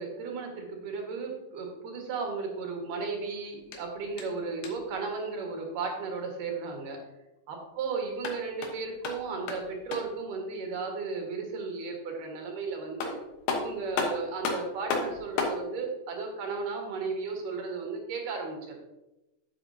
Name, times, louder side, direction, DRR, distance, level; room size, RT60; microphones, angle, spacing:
voice 1, 0.0-7.0 7.5-13.2 13.5-18.8, right 4 dB, 90° right, 1 dB, 3.2 m, -35 dB
sound 1, 3.6-5.0 8.0-10.2 12.5-12.6 13.0-15.6, left 4 dB, 85° left, 2.7 m, -34 dB
9.6 x 7.8 x 2.8 m, 0.97 s
omnidirectional pair, 3.6 m